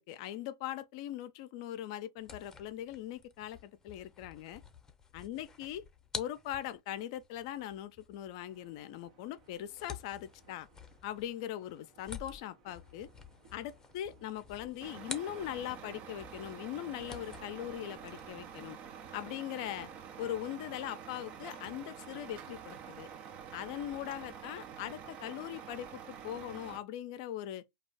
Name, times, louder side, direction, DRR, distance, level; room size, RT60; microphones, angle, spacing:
voice 1, 0.0-4.6 5.1-5.8 6.1-10.7 11.0-13.1 13.5-18.8 19.1-19.9 20.2-23.1 23.5-27.6, left 12 dB, 60° left, 0.4 m, -41 dB
sound 1, 2.2-15.9 16.2-18.7, left 5 dB, 15° left, 0.7 m, -50 dB
sound 2, 8.4-21.5, right 5 dB, 75° right, 0.9 m, -65 dB
Truck, 14.8-26.8, right 7 dB, 45° right, 0.5 m, -48 dB
2.5 x 2.3 x 3.3 m
hypercardioid pair, 105°, 3 cm